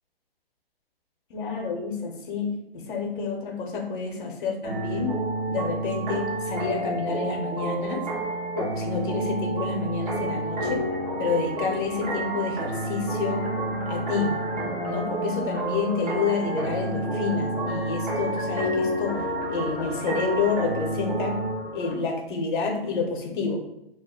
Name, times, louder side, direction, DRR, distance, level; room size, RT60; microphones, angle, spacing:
voice 1, 1.3-5.2 5.5-8.0 8.5-10.8 11.2-13.4 13.8-14.3 14.8-19.2 19.5-21.3 21.7-23.6, left 5 dB, 55° left, 2 dB, 0.7 m, -29 dB
sound 1, 4.6-21.5, right 2 dB, 40° right, 0.8 m, -30 dB
sound 2, 10.6-21.9, left 2 dB, 20° left, 0.4 m, -37 dB
2.4 x 2.0 x 3.6 m, 0.86 s
hypercardioid pair, 130°, 30 cm